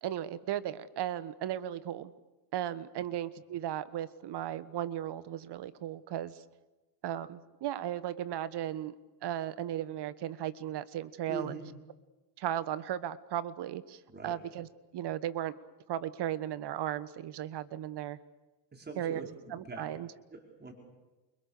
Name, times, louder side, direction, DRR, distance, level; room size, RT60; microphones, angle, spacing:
voice 1, 0.0-2.1 2.5-6.4 7.0-8.9 9.2-11.6 12.4-14.7 14.9-15.6 15.9-18.2 19.0-19.2 19.5-20.1, right 11 dB, 55° right, 15 dB, 1.5 m, -36 dB
voice 2, 11.3-11.6 14.1-14.4 18.7-19.8 20.3-20.7, right 3 dB, 20° right, 1 dB, 5.4 m, -43 dB
29.5 x 23.0 x 6.8 m, 1.1 s
supercardioid pair, 90°, 50 cm